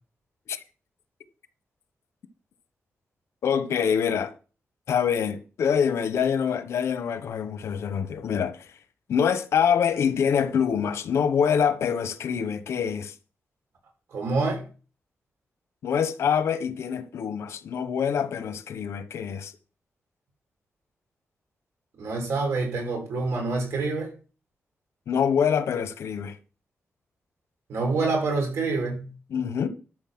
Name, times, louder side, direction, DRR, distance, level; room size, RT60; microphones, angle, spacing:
voice 1, 3.4-4.3 4.9-8.7 9.1-13.1 15.8-19.5 25.1-26.4 29.3-29.7, left 7 dB, 85° left, 1.1 m, -25 dB
voice 2, 14.1-14.6 22.0-24.1 27.7-29.1, right 3 dB, 80° right, 5.9 m, -26 dB
12.5 x 6.4 x 6.1 m
wide cardioid pair, 135°, 5 cm